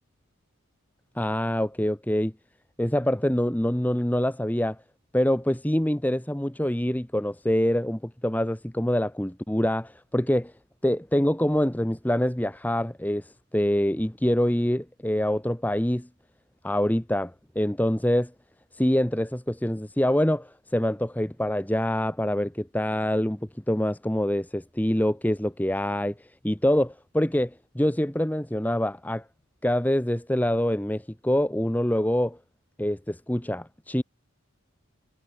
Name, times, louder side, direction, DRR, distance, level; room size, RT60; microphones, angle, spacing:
voice 1, 1.2-2.3 2.8-4.8 5.1-10.5 10.8-16.1 16.6-18.3 18.7-23.4 23.7-29.2 29.6-32.4 32.8-34.0, left 1 dB, 5° left, 0.9 m, -25 dB
head